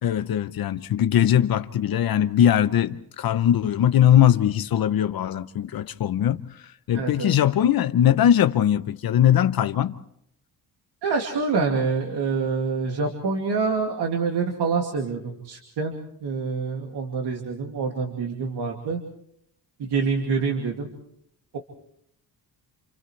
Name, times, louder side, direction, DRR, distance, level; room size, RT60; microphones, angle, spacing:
voice 1, 0.0-10.0, left 10 dB, 60° left, 0.7 m, -21 dB
voice 2, 6.9-7.4 11.0-15.9 16.2-19.0 19.8-20.9, right 4 dB, 80° right, 2.5 m, -26 dB
29.5 x 29.0 x 3.2 m
wide cardioid pair, 165°, 40 cm